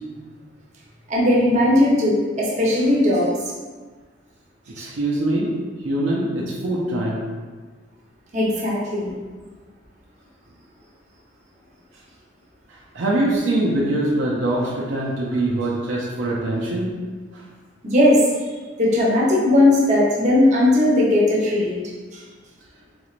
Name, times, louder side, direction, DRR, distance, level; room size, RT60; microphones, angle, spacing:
voice 1, 1.1-3.3 4.8-4.9 8.3-9.1 17.8-18.2 18.8-21.8 22.1-22.2, left 1 dB, 40° right, -6 dB, 0.8 m, -18 dB
voice 2, 4.8-5.5 5.8-7.2 12.7-16.9 17.3-17.4, right 1 dB, 70° right, -5 dB, 0.5 m, -23 dB
4.0 x 3.1 x 2.4 m, 1.4 s
head